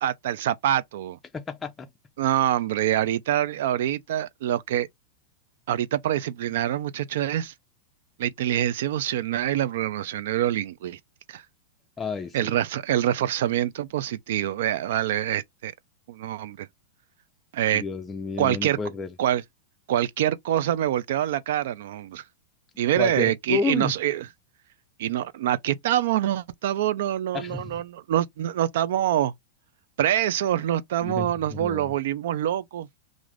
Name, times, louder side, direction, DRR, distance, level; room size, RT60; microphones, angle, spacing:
voice 1, 0.0-1.2 2.2-4.9 5.7-7.5 8.2-11.0 11.3-11.4 12.3-15.7 16.1-16.7 17.5-17.8 18.4-18.8 19.2-19.4 19.9-22.2 22.8-24.3 25.0-29.3 30.0-32.9, right 11 dB, 70° right, 0.3 m, -25 dB
voice 2, 1.3-1.9 12.0-12.5 17.7-19.1 23.0-23.9 27.3-27.7 31.0-31.9, left 4 dB, 15° left, 0.4 m, -31 dB
2.5 x 2.4 x 3.2 m
hypercardioid pair, 130°, 0 cm